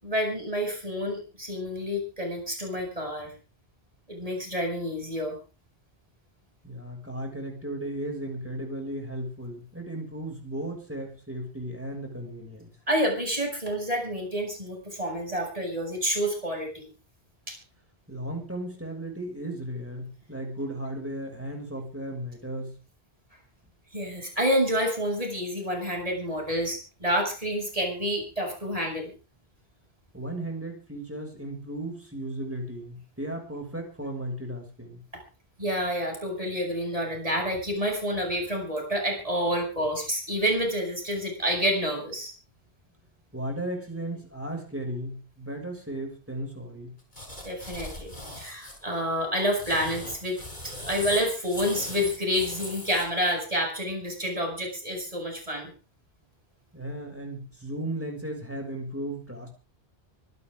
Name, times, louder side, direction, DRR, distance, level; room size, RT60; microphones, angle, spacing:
voice 1, 0.0-3.3 4.1-5.4 12.9-16.9 17.5-17.6 23.9-29.1 35.6-42.3 47.4-50.4 50.7-55.7, equal, 35° right, 1 dB, 7.4 m, -28 dB
voice 2, 6.6-12.7 18.1-22.8 30.1-35.0 43.3-46.9 56.7-59.5, right 1 dB, 10° right, 2 dB, 6.4 m, -35 dB
sound 1, 47.1-48.8 49.4-53.0, left 1 dB, 45° left, 6.8 m, -39 dB
24.5 x 11.5 x 3.8 m, 0.35 s
omnidirectional pair, 1.1 m